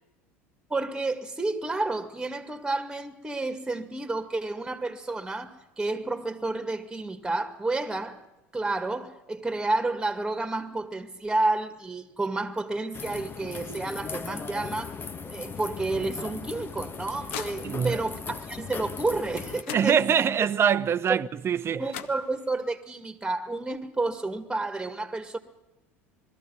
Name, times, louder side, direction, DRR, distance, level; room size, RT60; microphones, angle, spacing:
voice 1, 0.7-8.2 8.5-15.0 15.2-20.3 21.1-21.2 21.7-25.4, right 2 dB, 10° right, 2.2 m, -30 dB
sound 1, 12.9-19.6, left 5 dB, 30° left, 1.3 m, -38 dB
sound 2, 16.5-18.1 19.2-19.3 19.6-20.5 21.6-21.7 21.9-22.8, left 10 dB, 75° left, 0.9 m, -42 dB
voice 2, 17.6-18.0 19.7-21.8, right 8 dB, 35° right, 0.8 m, -24 dB
21.0 x 14.0 x 9.6 m
hypercardioid pair, 80°, 7 cm